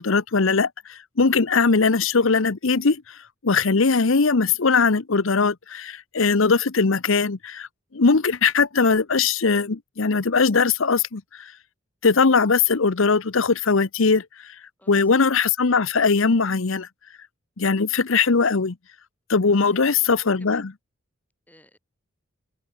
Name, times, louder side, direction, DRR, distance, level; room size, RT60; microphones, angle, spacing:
voice 1, 0.0-3.2 3.4-7.7 7.9-11.5 12.0-14.2 14.9-16.9 17.6-18.8 19.3-20.7, left 4 dB, 70° left, 0.9 m, -20 dB
voice 2, 14.8-15.1 19.6-20.7 21.5-21.8, left 1 dB, 10° left, 7.8 m, -55 dB
head